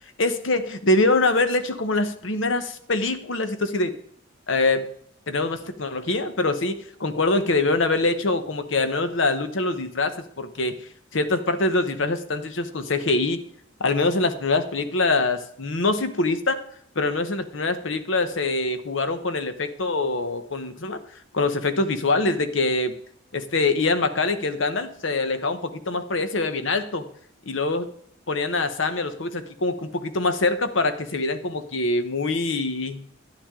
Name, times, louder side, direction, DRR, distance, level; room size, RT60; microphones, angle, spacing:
voice 1, 0.2-4.0 4.5-4.8 5.3-10.8 11.1-13.4 13.8-16.6 16.9-21.0 21.3-22.9 23.3-27.0 27.5-27.9 28.3-33.0, left 2 dB, 70° left, 10 dB, 1.0 m, -24 dB
11.0 x 10.5 x 3.7 m, 0.65 s
head